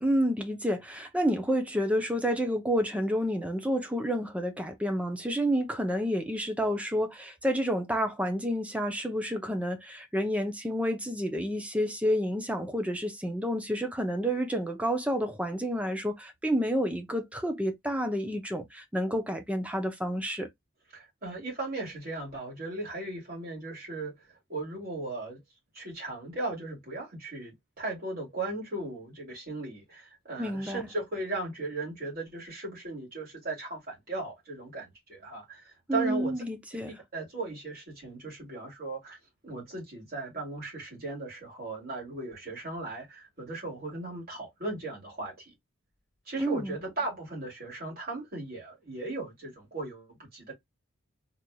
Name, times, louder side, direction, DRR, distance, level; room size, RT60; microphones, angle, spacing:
voice 1, 0.0-20.5 30.4-30.9 35.9-36.9 46.4-46.8, equal, 5° right, 0.6 m, -29 dB
voice 2, 20.9-24.1 24.5-25.4 25.7-36.3 37.1-39.2 39.4-45.5 46.3-50.5, right 2 dB, 45° right, 2.6 m, -37 dB
3.9 x 3.1 x 2.3 m
head